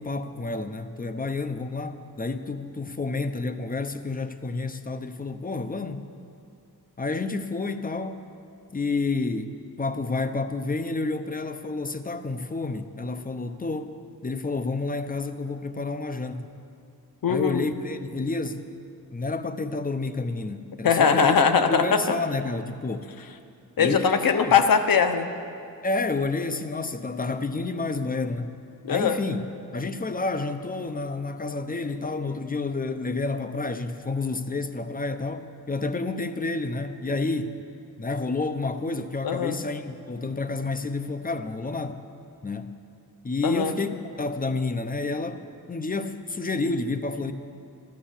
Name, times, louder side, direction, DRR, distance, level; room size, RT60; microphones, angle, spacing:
voice 1, 0.0-6.1 7.0-8.2 8.7-9.5 9.8-14.0 14.2-16.5 17.3-18.6 19.1-21.3 21.7-23.1 23.8-24.5 25.8-28.5 28.9-29.4 29.7-37.6 38.0-42.0 42.4-42.8 43.2-45.4 45.7-47.3, left 3 dB, 25° left, 10 dB, 0.8 m, -29 dB
voice 2, 17.2-17.7 20.8-22.0 23.8-25.3 28.8-29.2 39.2-39.6 43.4-43.7, left 6 dB, 65° left, 8 dB, 1.1 m, -21 dB
14.0 x 12.0 x 7.3 m, 2.5 s
cardioid pair, 90°, 37 cm